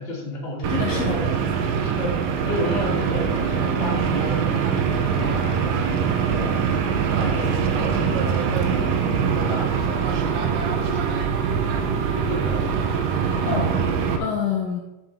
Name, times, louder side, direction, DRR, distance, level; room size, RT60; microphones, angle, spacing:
voice 1, 0.0-1.3 1.8-12.9, left 1 dB, 20° left, -5 dB, 2.3 m, -33 dB
sound 1, 0.6-14.2, right 6 dB, 75° right, 2.3 m, -23 dB
voice 2, 0.7-1.3 13.2-13.9 14.2-14.8, left 7 dB, 75° left, 1 dB, 2.3 m, -27 dB
11.0 x 6.8 x 3.6 m, 1.0 s
omnidirectional pair, 4.3 m